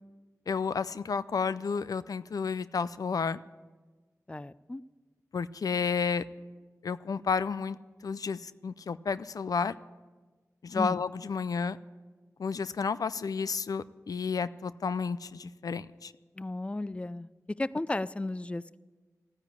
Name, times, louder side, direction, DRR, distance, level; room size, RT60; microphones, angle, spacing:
voice 1, 0.5-3.4 5.3-6.3 6.8-7.8 8.0-9.7 10.6-11.8 12.4-16.1, left 5 dB, 85° left, 16 dB, 0.4 m, -31 dB
voice 2, 4.3-4.8 10.7-11.0 16.4-17.3 17.6-18.8, left 2 dB, 20° left, 18 dB, 0.4 m, -34 dB
14.5 x 9.9 x 8.3 m, 1.3 s
wide cardioid pair, 55°, 6 cm